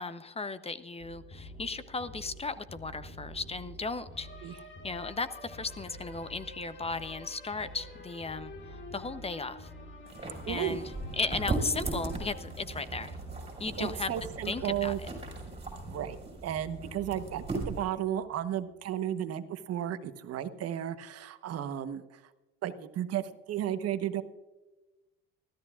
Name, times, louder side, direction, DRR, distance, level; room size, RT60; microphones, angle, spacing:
voice 1, 0.0-8.5 8.9-9.7 10.5-10.8 11.1-13.2 13.6-14.1 14.4-14.9, left 4 dB, 20° left, 14 dB, 0.8 m, -36 dB
sound 1, 1.0-18.6, left 1 dB, 40° left, 3.0 m, -47 dB
sound 2, 10.1-17.9, right 3 dB, 20° right, 5.4 m, -38 dB
voice 2, 10.5-10.8 13.8-15.0 15.9-16.2 16.4-22.2 22.6-24.2, right 11 dB, 50° right, 11 dB, 1.1 m, -34 dB
23.5 x 13.5 x 2.4 m, 1.1 s
supercardioid pair, 85°, 31 cm